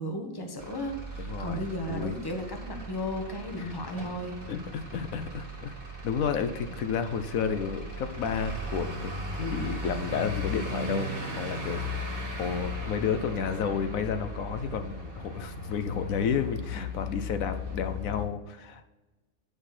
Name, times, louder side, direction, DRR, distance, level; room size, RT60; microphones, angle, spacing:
voice 1, 0.0-4.4 12.2-12.3, equal, 20° left, 3 dB, 1.1 m, -35 dB
Truck / Idling, 0.6-18.3, left 1 dB, 45° right, 1.8 m, -37 dB
voice 2, 1.2-2.2 3.6-3.7 4.5-5.7 6.0-18.8, left 7 dB, 80° left, 9 dB, 1.2 m, -31 dB
9.7 x 5.3 x 4.2 m, 1.1 s
omnidirectional pair, 1.4 m